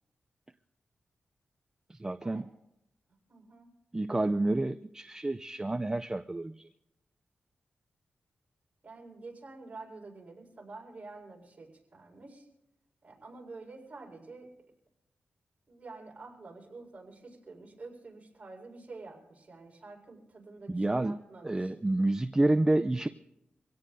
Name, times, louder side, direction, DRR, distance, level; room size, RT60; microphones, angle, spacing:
voice 1, 1.9-2.5 3.9-6.6 20.7-21.2 21.4-23.1, right 2 dB, 15° right, 10 dB, 0.4 m, -29 dB
voice 2, 3.3-3.7 8.8-12.5 13.0-14.5 15.7-21.7, right 3 dB, 40° right, -2 dB, 4.8 m, -48 dB
25.0 x 17.0 x 2.6 m, 0.84 s
wide cardioid pair, 95°, 4 cm